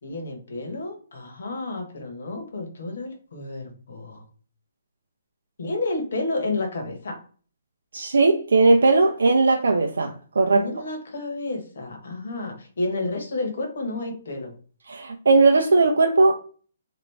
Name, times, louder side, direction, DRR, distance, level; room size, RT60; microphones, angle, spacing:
voice 1, 0.0-4.2 5.6-7.2 10.5-14.5, left 2 dB, 75° left, 1.2 m, -31 dB
voice 2, 7.9-10.6 14.9-16.4, right 3 dB, 85° right, 0.5 m, -18 dB
2.9 x 2.5 x 3.3 m
hypercardioid pair, 145°, 0 cm